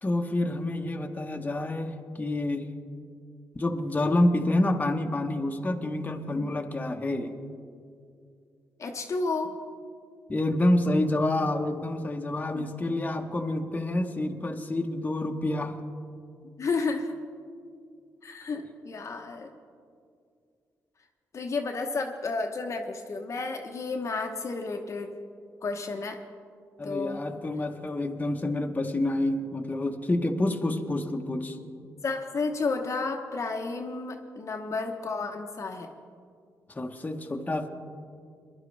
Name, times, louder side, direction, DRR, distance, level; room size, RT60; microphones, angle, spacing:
voice 1, 0.0-2.7 3.5-7.3 9.4-9.5 10.3-15.8 26.8-31.6 36.7-37.7, left 1 dB, 25° left, 3 dB, 1.1 m, -28 dB
voice 2, 8.8-9.5 12.5-12.6 16.6-17.1 18.2-19.5 21.3-25.1 25.6-26.2 26.8-27.2 32.0-35.9, left 3 dB, 50° left, 3 dB, 1.0 m, -31 dB
21.5 x 11.0 x 3.3 m, 2.3 s
cardioid pair, 65°, 7 cm